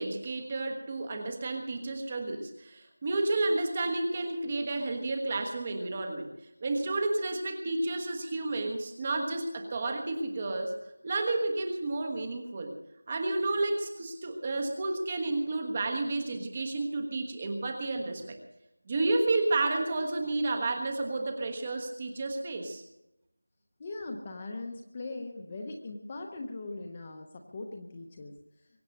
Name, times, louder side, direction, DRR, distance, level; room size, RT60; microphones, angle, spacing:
voice 1, 0.0-6.3 6.6-10.7 11.0-12.7 13.1-18.4 18.9-22.8, right 2 dB, 15° right, 4 dB, 1.3 m, -31 dB
voice 2, 23.8-28.4, left 2 dB, 15° left, 3 dB, 0.8 m, -40 dB
23.5 x 8.4 x 6.5 m, 0.90 s
figure-of-eight pair, 180°, 0 cm